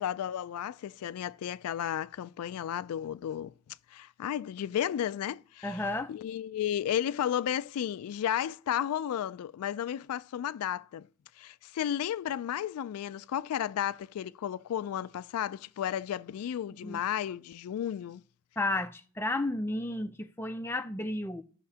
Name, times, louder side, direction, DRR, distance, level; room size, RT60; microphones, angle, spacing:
voice 1, 0.0-3.5 3.9-5.8 6.1-11.1 11.4-18.2, left 10 dB, 85° left, 0.3 m, -33 dB
voice 2, 5.6-6.1 16.8-17.0 18.6-21.4, left 2 dB, 10° left, 0.4 m, -32 dB
14.5 x 5.7 x 2.8 m
head